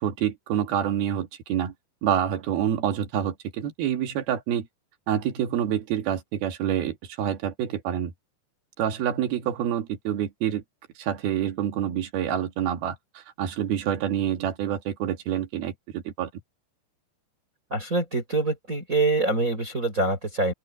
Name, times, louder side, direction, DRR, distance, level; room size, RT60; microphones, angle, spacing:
voice 1, 0.0-1.7 2.0-4.7 5.1-8.1 8.8-10.6 11.0-16.3, right 10 dB, 60° right, 3.8 m, -27 dB
voice 2, 17.7-20.5, right 2 dB, 15° right, 5.2 m, -25 dB
open air
omnidirectional pair, 5.3 m